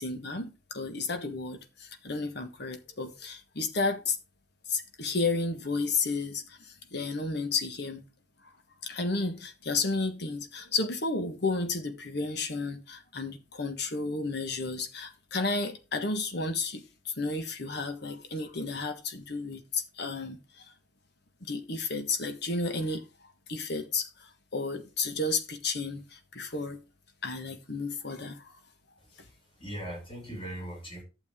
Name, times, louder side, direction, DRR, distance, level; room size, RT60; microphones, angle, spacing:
voice 1, 0.0-4.2 4.7-8.0 8.8-20.7 21.4-23.0 23.5-26.8 27.2-28.5, left 3 dB, 55° left, 1.4 m, -32 dB
voice 2, 29.1-31.0, right 1 dB, 25° left, 6.3 m, -40 dB
11.5 x 7.1 x 3.7 m
head